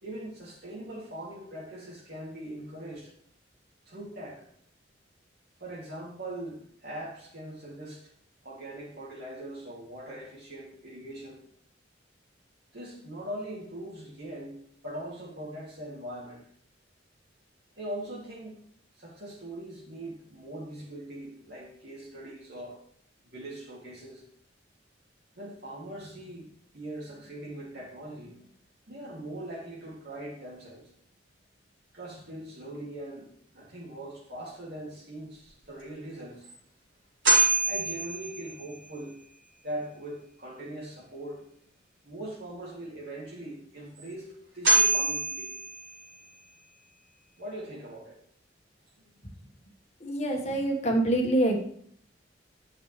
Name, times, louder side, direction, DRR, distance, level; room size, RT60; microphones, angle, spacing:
voice 1, 0.0-3.1 3.9-4.5 5.6-8.0 8.4-11.4 12.7-16.4 17.8-18.6 19.0-22.8 23.2-24.2 25.4-26.5 26.7-28.5 28.9-30.9 31.9-33.3 33.5-36.4 37.6-39.2 39.6-41.5 42.0-45.6 47.4-48.2 49.0-49.1, right 1 dB, 60° right, -4 dB, 2.7 m, -41 dB
sound 1, 35.8-35.9 36.4-36.5 37.2-38.9 44.0-44.1 44.6-46.3, right 3 dB, 75° right, 4.5 m, -25 dB
voice 2, 50.0-51.6, right 1 dB, 35° left, 2 dB, 1.6 m, -25 dB
10.5 x 7.4 x 3.3 m, 0.62 s
head